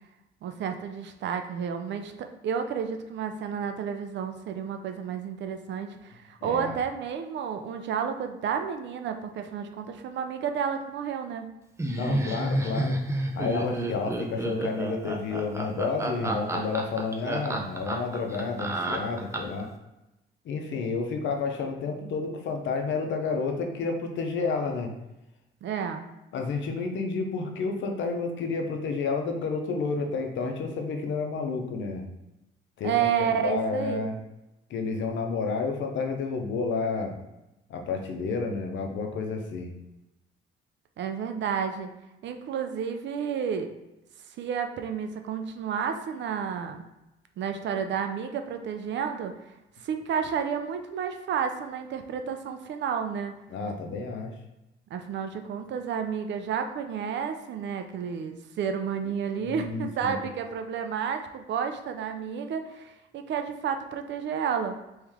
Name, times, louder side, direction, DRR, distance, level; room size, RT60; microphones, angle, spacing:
voice 1, 0.4-11.5 25.6-26.1 32.8-34.1 41.0-41.9 42.2-43.7 44.4-46.8 47.4-49.3 49.8-53.3 54.9-64.8, right 7 dB, 65° right, 6 dB, 0.5 m, -31 dB
voice 2, 6.4-6.8 11.9-13.0 13.3-19.7 20.4-24.9 26.3-32.0 32.8-34.2 34.7-37.1 37.7-39.7 53.5-54.4 59.4-60.3, left 4 dB, 70° left, 3 dB, 0.7 m, -30 dB
Laughter, 11.8-19.6, right 1 dB, 15° right, 0.5 m, -30 dB
3.1 x 3.1 x 3.5 m, 0.93 s
cardioid pair, 90°, 20 cm